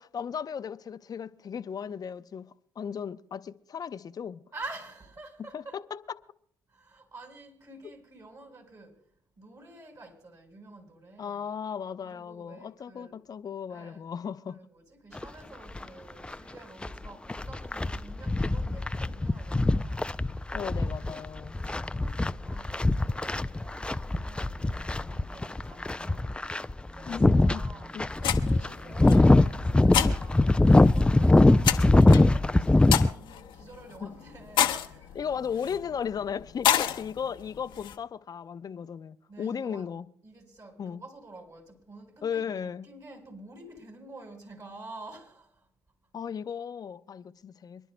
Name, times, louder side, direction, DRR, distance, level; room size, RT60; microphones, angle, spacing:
voice 1, 0.0-4.4 5.5-6.2 7.8-7.9 11.2-14.6 20.5-21.6 27.1-27.6 27.9-28.1 30.0-30.2 34.0-34.1 35.1-40.1 40.8-41.0 42.2-42.9 46.1-47.9, left 7 dB, 50° left, 0.7 m, -36 dB
voice 2, 4.5-5.8 6.7-9.0 9.4-11.4 12.0-13.2 13.7-14.1 14.5-20.5 20.9-21.3 21.6-26.7 26.9-31.7 32.3-35.5 39.3-39.9 40.2-45.7, right 2 dB, 40° right, 4.6 m, -49 dB
sound 1, 15.2-15.3 15.8-15.9 16.2-33.1, left 2 dB, 10° left, 0.4 m, -23 dB
sound 2, 28.2-38.0, left 10 dB, 75° left, 0.9 m, -31 dB
28.0 x 11.0 x 2.2 m
hypercardioid pair, 50°, 9 cm